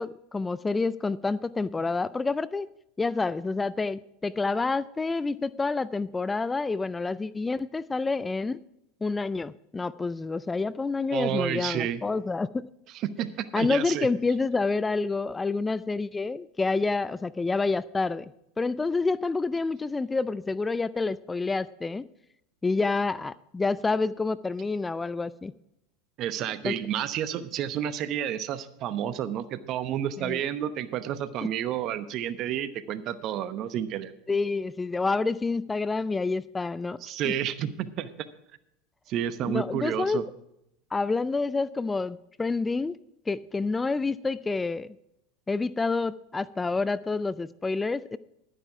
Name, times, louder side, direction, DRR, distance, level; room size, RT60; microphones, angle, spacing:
voice 1, 0.0-2.7 3.0-8.6 9.0-12.6 13.5-18.3 18.6-22.1 22.6-25.5 26.6-26.8 30.2-30.4 34.3-37.0 37.2-37.3 39.4-40.2 40.9-43.0 43.3-45.0 45.5-48.2, left 3 dB, 15° left, 17 dB, 0.4 m, -28 dB
voice 2, 11.1-12.0 13.0-14.1 26.2-34.1 37.0-38.1 39.1-40.2, right 10 dB, 50° right, 13 dB, 0.9 m, -30 dB
11.0 x 10.0 x 4.8 m, 0.81 s
hypercardioid pair, 85°, 0 cm